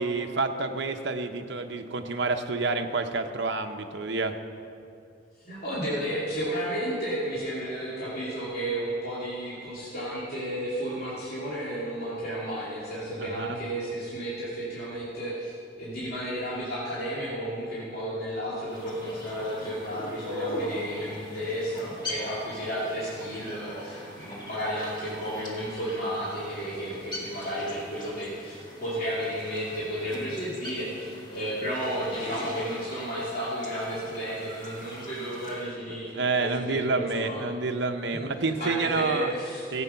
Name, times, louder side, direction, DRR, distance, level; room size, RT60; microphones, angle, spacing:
voice 1, 0.0-4.3 13.2-13.6 35.9-39.3 39.7-39.8, right 3 dB, 60° right, 5 dB, 0.8 m, -29 dB
voice 2, 5.4-37.4 38.1-39.6, equal, 50° left, -10 dB, 2.6 m, -32 dB
sound 1, 18.6-35.7, left 1 dB, 25° left, 1.9 m, -41 dB
15.5 x 8.3 x 5.7 m, 2.5 s
head